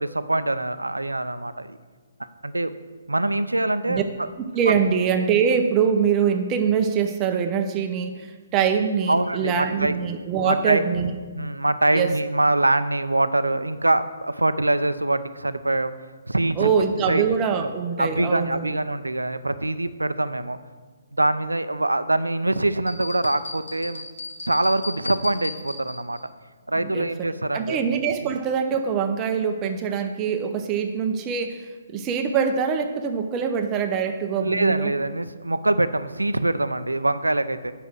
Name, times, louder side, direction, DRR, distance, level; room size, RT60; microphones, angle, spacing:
voice 1, 0.0-1.8 2.4-2.7 3.1-4.0 4.7-4.8 9.1-10.0 10.4-10.8 11.3-15.9 16.3-16.7 17.1-17.2 17.6-17.7 18.0-20.6 21.1-24.0 24.5-26.2 26.7-27.8 34.4-37.7, right 2 dB, 90° right, 13 dB, 0.5 m, -24 dB
voice 2, 4.5-11.1 11.9-12.2 16.6-18.7 26.8-27.3 27.5-34.9, right 7 dB, 25° right, 6 dB, 0.7 m, -24 dB
sound 1, 22.9-26.2, left 3 dB, 60° left, 1.9 m, -36 dB
8.3 x 5.8 x 6.3 m, 1.4 s
figure-of-eight pair, 135°, 0 cm